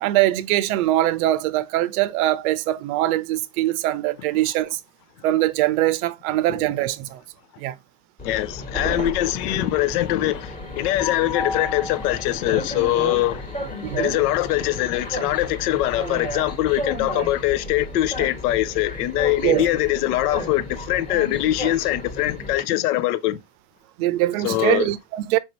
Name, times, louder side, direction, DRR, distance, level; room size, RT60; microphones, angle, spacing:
voice 1, 0.0-4.8 5.2-7.2 7.6-7.8 13.8-14.2 19.4-19.6 24.0-25.4, right 15 dB, 60° right, 0.6 m, -22 dB
voice 2, 8.2-13.4 14.0-23.4 24.4-24.9, left 15 dB, 70° left, 0.6 m, -23 dB
Train, 8.2-22.6, left 1 dB, 15° left, 1.3 m, -32 dB
4.8 x 2.7 x 2.9 m
supercardioid pair, 115°, 48 cm